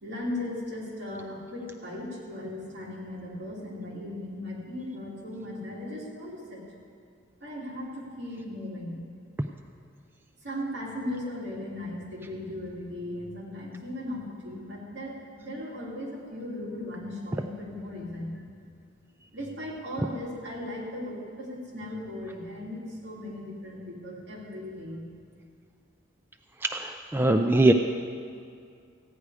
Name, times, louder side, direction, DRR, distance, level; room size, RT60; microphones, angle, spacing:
voice 1, 0.0-6.6 7.4-9.0 10.4-18.4 19.3-25.0, left 1 dB, 60° right, -5 dB, 2.8 m, -37 dB
voice 2, 26.6-27.7, right 2 dB, 10° right, 5 dB, 0.3 m, -22 dB
15.0 x 9.6 x 4.8 m, 2.3 s
head